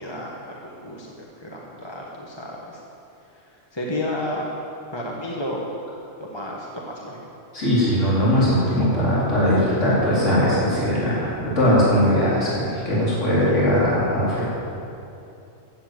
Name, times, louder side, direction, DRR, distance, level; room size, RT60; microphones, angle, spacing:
voice 1, 0.0-2.8 3.3-4.5 4.9-5.8 6.2-7.2, left 1 dB, 20° left, -2 dB, 1.3 m, -32 dB
voice 2, 7.5-14.4, equal, 60° left, -9 dB, 4.8 m, -20 dB
15.5 x 9.0 x 7.8 m, 2.7 s
omnidirectional pair, 1.4 m